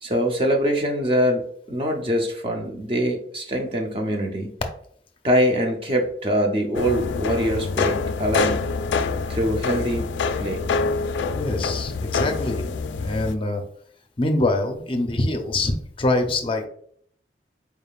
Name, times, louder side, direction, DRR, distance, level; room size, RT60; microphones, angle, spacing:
voice 1, 0.0-4.5 5.2-8.7 9.3-10.1 10.4-10.6, equal, 30° right, 2 dB, 0.5 m, -23 dB
sound 1, 6.7-13.3, left 4 dB, 85° left, 0.3 m, -26 dB
voice 2, 11.3-13.6 14.2-16.7, left 2 dB, 30° left, 5 dB, 0.5 m, -24 dB
4.5 x 3.5 x 2.3 m, 0.63 s
head